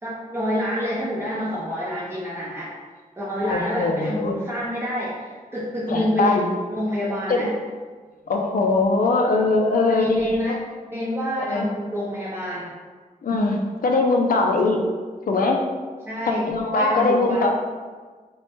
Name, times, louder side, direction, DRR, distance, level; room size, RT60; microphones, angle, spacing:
voice 1, 0.0-2.7 3.2-6.4 6.7-7.5 9.9-10.6 10.8-12.7 16.1-17.5, equal, 15° right, -8 dB, 0.6 m, -27 dB
voice 2, 3.4-4.4 5.9-6.5 7.3-7.5 8.3-10.6 11.4-11.7 13.2-14.8 15.3-15.6 16.5-17.5, left 3 dB, 70° left, 1 dB, 0.5 m, -21 dB
3.1 x 2.1 x 4.2 m, 1.5 s
wide cardioid pair, 140°, 15 cm